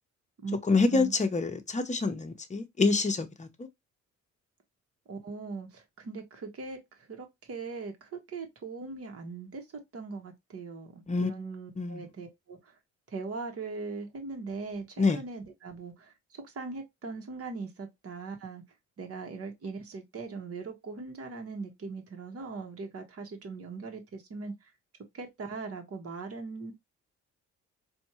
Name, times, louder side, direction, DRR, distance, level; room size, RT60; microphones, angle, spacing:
voice 1, 0.7-3.5 11.1-11.3 11.8-12.0 15.0-15.2, left 3 dB, 25° left, 0.9 m, -26 dB
voice 2, 5.1-12.7 13.1-18.6 19.0-24.7 25.1-26.7, right 4 dB, 50° right, 1.4 m, -40 dB
4.4 x 2.7 x 3.0 m
cardioid pair, 90°, 30 cm